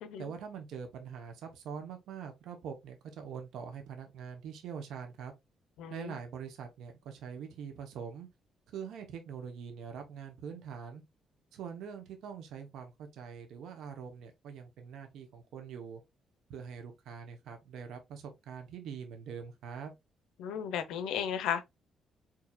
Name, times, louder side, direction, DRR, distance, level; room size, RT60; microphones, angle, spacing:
voice 1, 0.2-5.3 5.9-8.3 8.7-11.0 11.5-16.0 16.5-19.9, right 7 dB, 80° right, 0.9 m, -44 dB
voice 2, 5.8-6.2 20.4-21.6, left 8 dB, 90° left, 0.6 m, -34 dB
4.7 x 2.7 x 2.3 m
cardioid pair, 90°, 0 cm